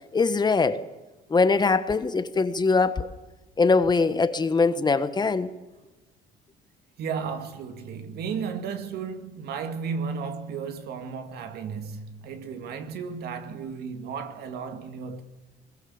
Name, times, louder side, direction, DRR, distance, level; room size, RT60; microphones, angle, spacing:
voice 1, 0.1-0.8 1.3-3.1 3.6-5.5, left 4 dB, 25° left, 1.3 m, -22 dB
voice 2, 7.0-15.2, right 6 dB, 70° right, 2.4 m, -34 dB
22.0 x 21.0 x 7.3 m
cardioid pair, 110°, 17 cm